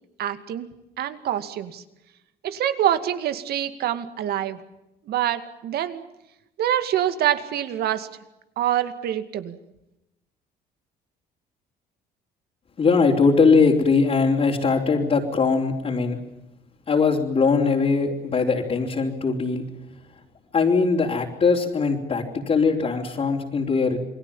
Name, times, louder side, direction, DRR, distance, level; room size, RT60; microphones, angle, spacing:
voice 1, 0.2-0.7 1.0-1.8 2.4-4.6 5.1-6.0 6.6-8.1 8.6-9.6, right 11 dB, 70° right, 10 dB, 2.3 m, -25 dB
voice 2, 12.8-16.2 16.9-19.7 20.5-24.0, left 4 dB, 40° left, -5 dB, 4.0 m, -21 dB
28.5 x 20.5 x 7.3 m, 0.89 s
cardioid pair, 110°, 17 cm